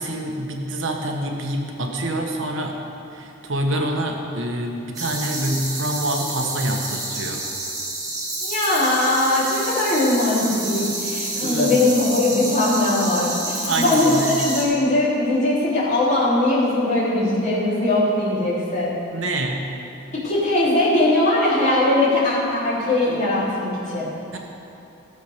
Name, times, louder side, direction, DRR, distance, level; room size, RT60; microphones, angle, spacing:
voice 1, 0.0-2.8 3.1-7.4 11.4-11.8 13.7-14.4 19.1-19.7 24.3-24.4, right 1 dB, 70° right, 2 dB, 1.3 m, -26 dB
sound 1, 4.9-14.6, right 2 dB, 20° right, 2.0 m, -29 dB
voice 2, 8.4-19.0 20.2-24.1, left 2 dB, 35° left, -8 dB, 3.4 m, -20 dB
15.0 x 7.0 x 6.5 m, 2.8 s
head